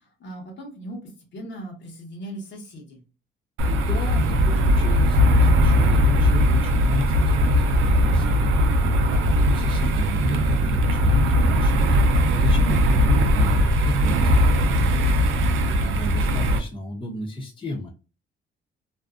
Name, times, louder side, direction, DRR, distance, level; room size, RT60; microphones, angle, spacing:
voice 1, 0.0-3.0 14.1-14.5, right 1 dB, 65° left, 0 dB, 1.1 m, -38 dB
sound 1, 3.6-16.6, equal, 90° right, 0.5 m, -19 dB
voice 2, 3.7-14.2 14.7-15.1 15.7-17.9, left 1 dB, 25° left, -1 dB, 0.8 m, -34 dB
2.6 x 2.3 x 2.4 m, 0.32 s
cardioid pair, 90°, 20 cm